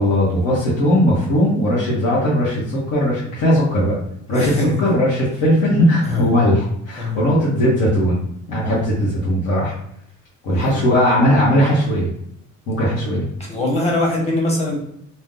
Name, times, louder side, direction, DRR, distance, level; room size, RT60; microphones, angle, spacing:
voice 1, 0.0-3.9 4.3-4.5 4.8-8.2 8.5-9.7 10.4-12.1 12.7-13.2, equal, 85° left, -7 dB, 1.1 m, -18 dB
voice 2, 4.3-4.9 6.0-6.4 7.0-7.3 8.7-8.8 10.5-10.8 13.5-14.7, left 2 dB, 20° left, -1 dB, 1.2 m, -22 dB
2.6 x 2.2 x 3.6 m, 0.74 s
cardioid pair, 90°, 30 cm